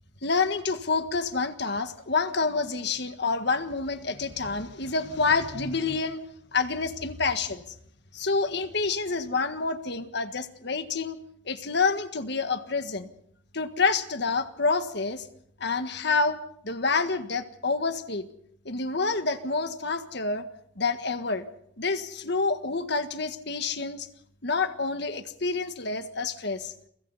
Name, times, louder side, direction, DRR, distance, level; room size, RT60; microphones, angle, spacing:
voice 1, 0.2-6.2 6.5-7.6 8.1-11.2 11.5-13.1 13.5-15.2 15.6-16.4 16.6-18.3 18.6-20.5 20.8-21.4 21.8-24.1 24.4-26.7, left 4 dB, 60° left, 9 dB, 1.7 m, -28 dB
30.0 x 24.0 x 4.2 m, 0.69 s
head